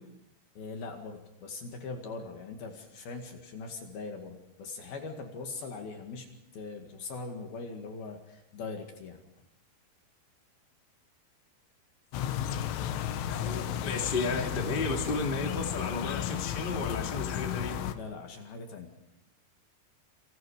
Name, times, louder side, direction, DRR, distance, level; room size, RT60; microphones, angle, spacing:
voice 1, 0.6-6.3 6.5-9.2 18.0-18.9, left 4 dB, 60° left, 3 dB, 3.5 m, -41 dB
sound 1, 12.1-18.0, left 10 dB, 80° left, 3.6 m, -33 dB
voice 2, 13.3-17.7, left 3 dB, 15° left, 1 dB, 2.4 m, -33 dB
28.5 x 26.5 x 5.0 m, 0.87 s
omnidirectional pair, 5.5 m